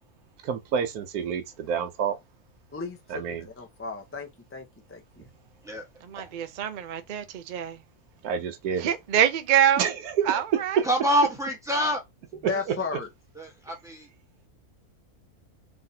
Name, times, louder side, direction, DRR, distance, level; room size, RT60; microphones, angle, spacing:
voice 1, 0.4-2.2 3.1-3.5 8.2-8.9 9.8-10.8 12.7-12.8, right 7 dB, 80° right, 1.2 m, -28 dB
voice 2, 2.7-5.3 12.5-13.1, left 4 dB, 15° left, 0.5 m, -35 dB
voice 3, 6.1-7.8 8.8-9.9 10.3-10.8, right 10 dB, 60° right, 0.5 m, -25 dB
voice 4, 10.8-12.0 12.5-12.6 13.3-14.1, equal, ahead, 1.1 m, -26 dB
4.0 x 3.5 x 2.7 m
omnidirectional pair, 1.6 m